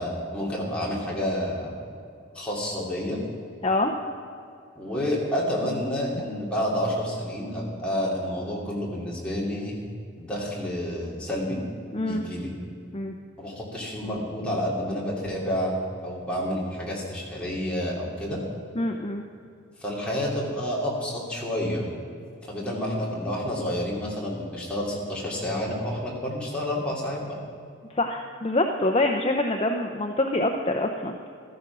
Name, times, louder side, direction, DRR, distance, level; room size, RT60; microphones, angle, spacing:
voice 1, 0.0-1.8 2.3-3.2 4.8-9.8 10.2-11.6 12.0-12.5 13.4-15.7 16.0-18.4 19.8-21.9 22.5-27.4, equal, 5° left, -5 dB, 3.1 m, -29 dB
voice 2, 11.9-12.2 12.9-13.1 18.8-19.2 27.9-31.2, left 2 dB, 25° left, 3 dB, 0.7 m, -25 dB
15.5 x 13.0 x 6.2 m, 2.5 s
head